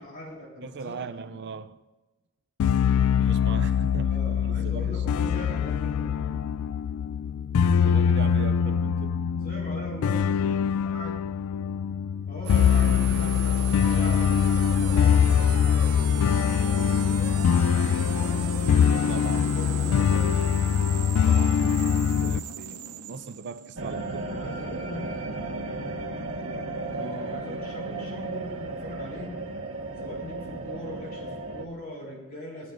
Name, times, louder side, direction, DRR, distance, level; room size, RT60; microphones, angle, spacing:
voice 1, 0.0-1.1 4.0-6.4 9.4-11.3 12.3-18.4 19.3-20.6 24.3-25.7 27.0-29.4 30.0-32.7, left 1 dB, 45° left, 4.2 m, -41 dB
voice 2, 0.6-1.8 3.2-4.2 4.5-5.1 7.8-9.2 18.8-19.5 21.3-22.0 22.2-24.4, right 5 dB, 50° right, 0.5 m, -39 dB
sound 1, 2.6-22.4, left 7 dB, 70° left, 0.3 m, -23 dB
sound 2, 12.4-24.4, right 7 dB, 90° right, 0.7 m, -37 dB
sound 3, 23.8-31.7, right 2 dB, 65° right, 1.4 m, -34 dB
18.0 x 12.5 x 2.6 m
head